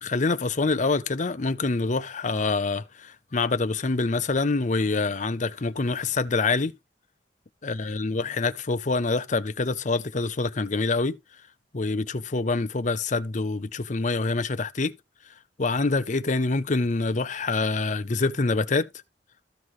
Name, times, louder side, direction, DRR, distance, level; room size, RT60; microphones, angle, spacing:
voice 1, 0.0-6.7 7.6-11.2 11.7-14.9 15.6-18.9, left 3 dB, 45° left, 0.7 m, -26 dB
14.0 x 5.7 x 3.2 m
head